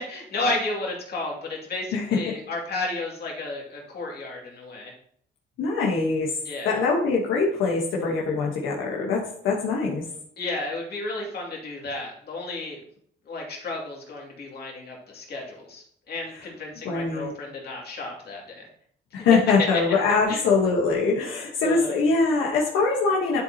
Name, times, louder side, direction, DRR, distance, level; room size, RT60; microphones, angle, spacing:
voice 1, 0.0-4.9 6.4-6.8 10.4-12.8 13.3-18.7 19.1-19.3 19.7-19.8 20.3-20.4 21.2-21.3 21.6-22.0, left 2 dB, 55° left, -2 dB, 2.4 m, -33 dB
voice 2, 1.9-2.3 5.6-6.3 6.6-10.0 16.8-17.3 19.1-23.4, left 4 dB, 85° left, -3 dB, 1.2 m, -23 dB
10.5 x 4.1 x 2.8 m, 0.64 s
cardioid pair, 90°, 20 cm